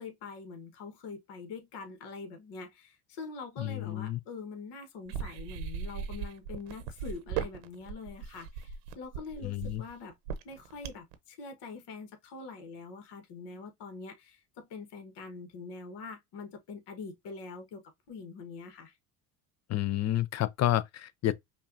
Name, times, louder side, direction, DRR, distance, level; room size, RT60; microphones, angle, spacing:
voice 1, 0.0-10.1 10.4-17.8 18.1-18.9, left 4 dB, 60° left, 1.2 m, -44 dB
voice 2, 3.6-4.2 9.4-9.8 19.7-21.3, left 13 dB, 35° left, 0.4 m, -30 dB
sound 1, 5.1-11.1, right 8 dB, 80° right, 0.9 m, -38 dB
5.4 x 2.3 x 2.5 m
supercardioid pair, 80°, 47 cm